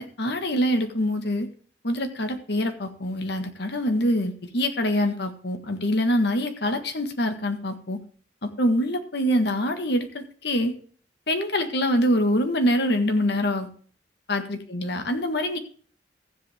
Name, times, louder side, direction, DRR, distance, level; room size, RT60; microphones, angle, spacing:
voice 1, 0.0-1.5 1.8-8.0 8.4-10.7 11.3-13.7 14.3-15.6, equal, 65° left, 7 dB, 1.6 m, -25 dB
15.0 x 8.0 x 3.5 m, 0.44 s
head